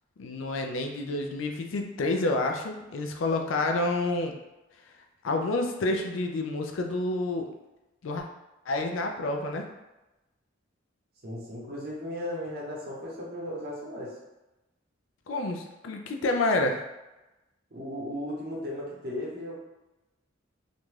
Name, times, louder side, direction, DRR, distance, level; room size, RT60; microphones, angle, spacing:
voice 1, 0.2-4.3 5.2-7.5 8.0-8.2 8.7-9.6 15.3-16.8, left 2 dB, 75° left, 3 dB, 0.4 m, -28 dB
voice 2, 11.2-14.2 17.7-19.6, left 1 dB, 55° right, -4 dB, 0.9 m, -36 dB
2.6 x 2.2 x 3.1 m, 1.0 s
head